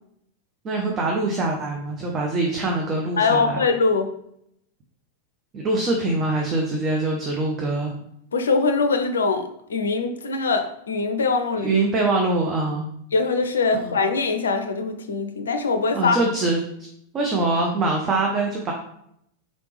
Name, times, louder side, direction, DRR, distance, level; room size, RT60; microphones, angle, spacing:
voice 1, 0.6-3.6 5.5-7.9 11.6-12.9 13.8-13.9 15.9-16.6 17.1-18.7, right 2 dB, 30° right, 0 dB, 0.6 m, -23 dB
voice 2, 3.2-4.1 8.3-11.8 13.1-16.2, left 4 dB, 70° left, 7 dB, 0.4 m, -22 dB
4.0 x 3.3 x 3.1 m, 0.73 s
figure-of-eight pair, 90°, 0 cm